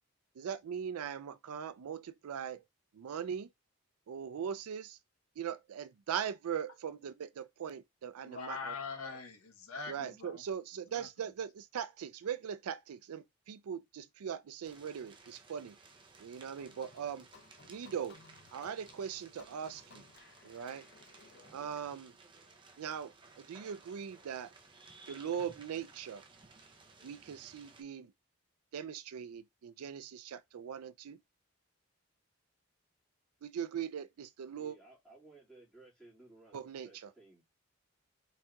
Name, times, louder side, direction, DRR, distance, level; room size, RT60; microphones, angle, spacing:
voice 1, 0.4-2.6 2.9-3.5 4.1-5.0 5.4-8.7 9.9-15.8 16.2-17.3 17.7-18.2 18.5-20.0 20.4-20.9 21.5-22.1 22.8-24.5 25.1-26.2 27.0-28.1 28.7-31.2 33.4-34.8 36.5-37.1, right 8 dB, 90° right, 0.4 m, -40 dB
voice 2, 8.2-10.4 10.9-11.1, left 4 dB, 80° left, 0.9 m, -43 dB
sound 1, 14.6-27.8, right 3 dB, 20° right, 0.5 m, -58 dB
sound 2, 16.6-21.8, left 4 dB, 50° left, 0.5 m, -60 dB
voice 3, 34.6-37.4, right 2 dB, 5° left, 1.9 m, -58 dB
4.1 x 3.6 x 2.3 m
head